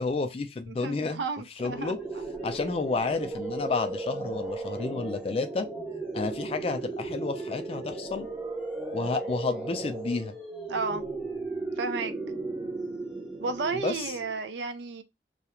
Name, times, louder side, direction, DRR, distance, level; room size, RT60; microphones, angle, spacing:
voice 1, 0.0-1.2 1.6-2.0 2.4-5.7 6.1-8.3 8.9-10.4 13.7-14.1, left 3 dB, 35° left, 0.3 m, -31 dB
voice 2, 0.7-2.2 10.7-11.0 11.8-12.1 13.4-15.0, right 4 dB, 75° right, 0.4 m, -33 dB
sound 1, 1.6-14.4, right 3 dB, 5° right, 0.6 m, -36 dB
2.3 x 2.1 x 2.9 m
head